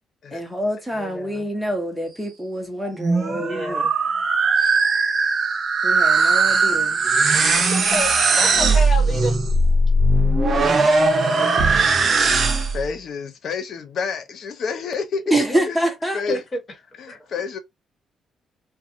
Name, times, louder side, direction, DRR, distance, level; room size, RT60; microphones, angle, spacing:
voice 1, 0.3-3.9 5.8-7.0 10.5-10.9 15.3-16.2, right 1 dB, ahead, 1.1 m, -26 dB
voice 2, 0.9-1.5 3.2-3.9 7.5-9.4 11.4-11.6 15.5-15.7 16.3-16.6 17.1-17.2, left 1 dB, 35° left, 1.3 m, -30 dB
sound 1, 2.8-12.9, right 3 dB, 45° right, 0.6 m, -19 dB
voice 3, 10.9-11.6 12.7-15.3 15.7-15.9 16.1-16.4 17.0-17.6, left 5 dB, 65° left, 0.7 m, -29 dB
2.5 x 2.3 x 2.6 m
cardioid pair, 90°, 0 cm